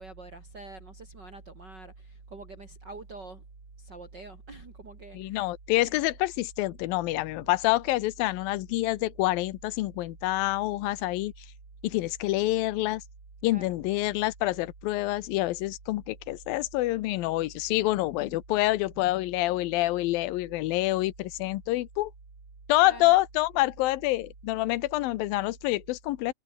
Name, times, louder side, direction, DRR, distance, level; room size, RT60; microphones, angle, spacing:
voice 1, 0.0-3.4 3.8-5.4 13.5-13.8 22.8-23.1, right 3 dB, 30° right, 3.9 m, -45 dB
voice 2, 5.1-11.3 11.8-13.0 13.4-22.1 22.7-26.3, left 17 dB, 85° left, 2.6 m, -27 dB
omnidirectional pair, 4.1 m